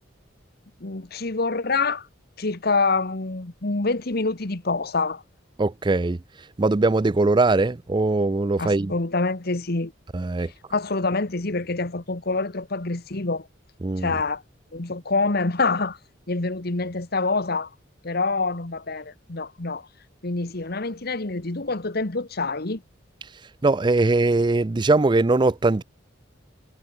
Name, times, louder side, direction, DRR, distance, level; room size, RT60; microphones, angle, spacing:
voice 1, 0.8-2.1 2.4-5.2 8.6-9.9 10.7-13.5 14.0-14.4 14.7-16.0 16.3-17.7 18.0-19.9 20.2-22.8, left 3 dB, 55° left, 1.4 m, -26 dB
voice 2, 5.6-6.2 6.6-8.9 10.1-10.5 13.8-14.2 23.6-25.8, right 2 dB, 25° right, 0.4 m, -21 dB
head